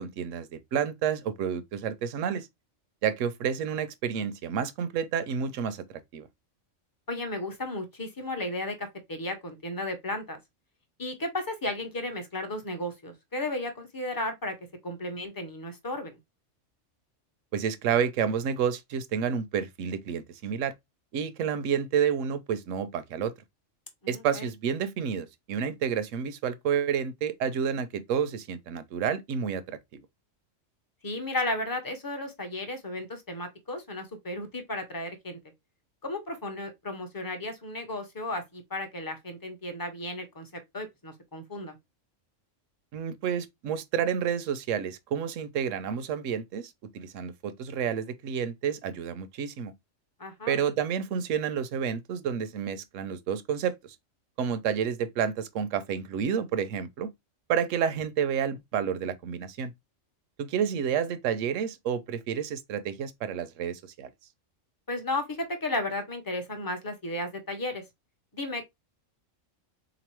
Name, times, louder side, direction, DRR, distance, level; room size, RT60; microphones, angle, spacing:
voice 1, 0.0-2.5 3.0-5.8 6.1-6.3 17.5-20.7 21.1-23.3 24.1-29.8 42.9-49.7 50.5-53.8 54.4-57.1 57.5-59.7 60.4-64.1, right 7 dB, 80° right, 0.9 m, -30 dB
voice 2, 7.1-10.4 11.0-14.6 14.8-16.2 24.0-24.5 31.0-35.4 36.0-40.5 40.7-41.8 50.2-50.6 64.9-67.8 68.3-68.6, left 1 dB, 25° left, 0.5 m, -34 dB
3.8 x 3.0 x 3.0 m
omnidirectional pair, 1.3 m